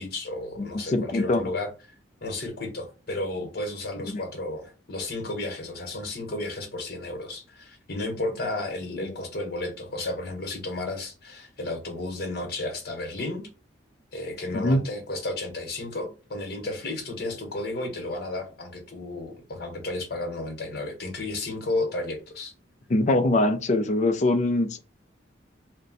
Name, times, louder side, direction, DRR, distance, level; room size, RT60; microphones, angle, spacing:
voice 1, 0.0-1.7 2.2-13.5 14.1-22.5, left 2 dB, 55° left, 1.0 m, -33 dB
voice 2, 0.6-1.4 4.1-4.2 8.9-9.2 14.5-14.8 22.9-24.8, left 2 dB, 40° left, 0.4 m, -23 dB
2.6 x 2.1 x 3.8 m
head